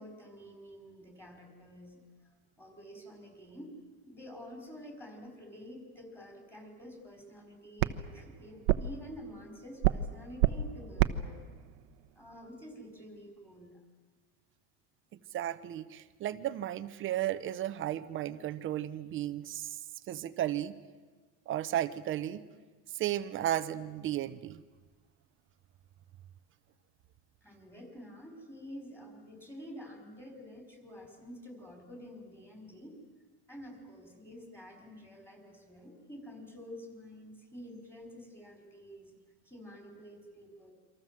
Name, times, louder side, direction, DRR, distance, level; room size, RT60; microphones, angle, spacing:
voice 1, 0.0-2.0 2.6-3.7 4.1-11.5 12.2-13.8 27.4-33.0 33.5-39.2 39.4-40.7, equal, 5° left, 3 dB, 4.8 m, -49 dB
sound 1, 6.8-13.2, right 12 dB, 85° right, 1.1 m, -33 dB
voice 2, 15.3-19.8 20.1-20.8 21.5-22.4 22.9-24.6, right 12 dB, 30° right, 12 dB, 0.8 m, -34 dB
28.0 x 25.0 x 7.5 m, 1.4 s
cardioid pair, 160°, 41 cm